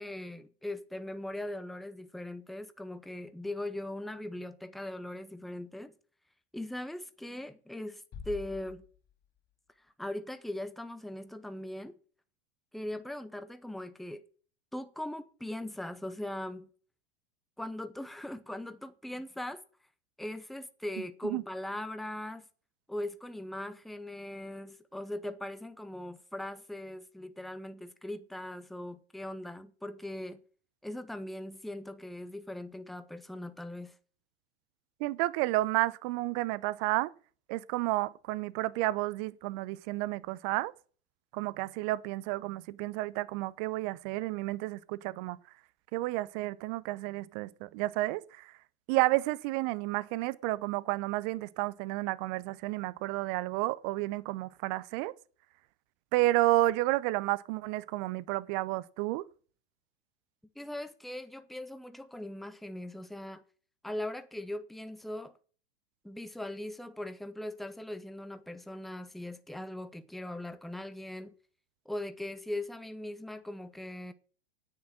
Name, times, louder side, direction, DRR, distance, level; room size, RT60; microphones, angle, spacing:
voice 1, 0.0-5.9 6.5-8.8 10.0-12.0 12.7-14.2 14.7-16.7 17.6-19.6 20.2-22.5 22.9-30.4 30.8-33.9 60.6-63.4 63.8-65.3 66.0-71.3 71.9-74.1, left 1 dB, ahead, 0.8 m, -40 dB
Bass drum, 8.1-9.5, left 7 dB, 30° left, 2.9 m, -47 dB
voice 2, 35.0-37.1 37.5-40.7 41.3-45.4 45.9-48.5 48.9-55.1 56.1-59.2, right 18 dB, 45° right, 0.7 m, -31 dB
9.6 x 9.6 x 5.8 m
figure-of-eight pair, 95°, 31 cm